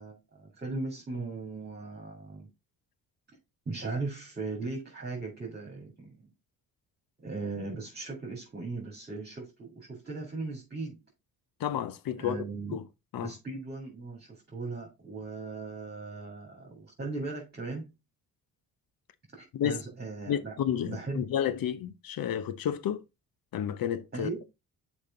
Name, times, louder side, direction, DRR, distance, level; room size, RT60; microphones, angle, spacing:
voice 1, 0.0-2.5 3.7-6.3 7.2-11.0 12.2-12.8 13.2-17.9 19.3-20.6 20.9-21.2 24.1-24.4, right 3 dB, 25° right, 2.9 m, -38 dB
voice 2, 11.6-12.4 12.7-12.8 13.1-13.3 19.5-19.8 20.3-23.0 23.5-24.3, left 9 dB, 60° left, 0.9 m, -31 dB
6.7 x 5.1 x 3.8 m
cardioid pair, 75°, 39 cm